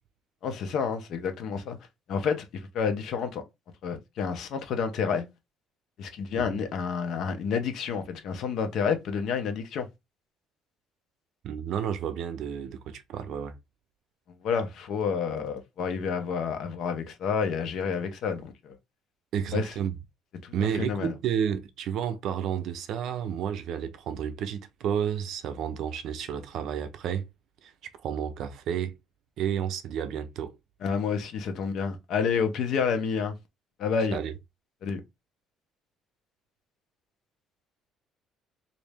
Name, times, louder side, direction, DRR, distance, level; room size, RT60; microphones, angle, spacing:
voice 1, 0.4-1.8 2.1-3.4 3.8-5.2 6.0-9.8 14.4-18.8 19.5-19.7 20.4-21.1 30.8-33.3 33.8-34.2 34.8-35.0, left 6 dB, 55° left, 0.8 m, -29 dB
voice 2, 11.4-13.6 19.3-19.9 20.5-27.3 27.6-27.7 28.0-28.9 29.4-30.6 34.1-34.3, right 8 dB, 60° right, 0.5 m, -31 dB
3.1 x 2.6 x 3.4 m
cardioid pair, 155°, 0 cm